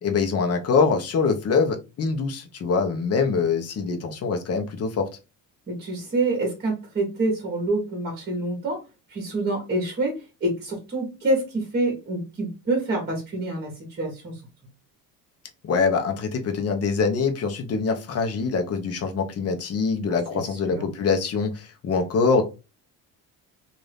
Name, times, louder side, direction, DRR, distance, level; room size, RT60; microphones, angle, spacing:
voice 1, 0.0-5.1 15.6-22.4, left 5 dB, 40° left, 5 dB, 0.8 m, -24 dB
voice 2, 5.7-8.8 9.1-14.3 20.1-20.2 20.7-20.9, right 2 dB, 25° right, 0 dB, 1.1 m, -27 dB
2.6 x 2.5 x 3.3 m, 0.28 s
cardioid pair, 135°, 36 cm